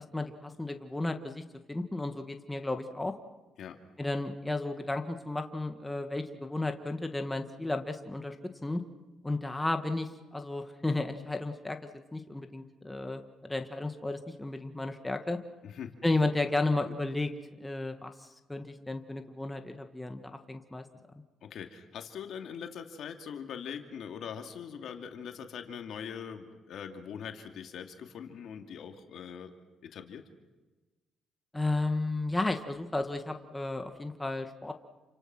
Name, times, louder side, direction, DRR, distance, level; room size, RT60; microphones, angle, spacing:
voice 1, 0.0-1.4 1.7-3.1 4.0-8.4 8.6-8.8 9.2-15.4 16.0-17.3 17.6-20.2 20.5-20.8 31.5-34.7, left 2 dB, 10° left, 6 dB, 1.7 m, -33 dB
voice 2, 21.5-29.5 29.8-30.2, left 7 dB, 70° left, 5 dB, 2.5 m, -42 dB
29.0 x 25.5 x 6.1 m, 1.2 s
cardioid pair, 90°, 0 cm